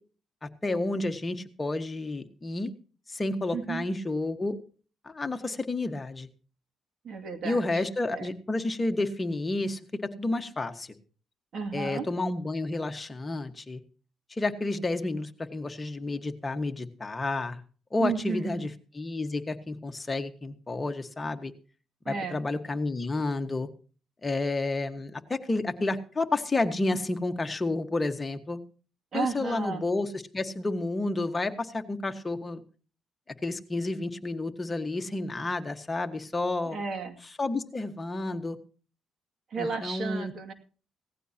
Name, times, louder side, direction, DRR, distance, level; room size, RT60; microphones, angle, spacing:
voice 1, 0.6-2.7 3.1-4.6 5.0-6.3 7.4-10.9 11.7-13.8 14.3-17.6 17.9-18.7 18.9-21.5 22.0-23.7 24.2-28.6 29.1-32.6 33.4-36.8 37.4-38.6 39.6-40.3, left 2 dB, 20° left, 6 dB, 1.5 m, -30 dB
voice 2, 3.5-3.8 7.0-7.8 8.1-8.3 11.5-12.1 18.0-18.7 22.1-22.4 29.1-29.8 36.7-37.2 39.5-40.5, right 5 dB, 60° right, 5 dB, 2.4 m, -33 dB
18.0 x 15.0 x 2.9 m, 0.38 s
cardioid pair, 90°, 0 cm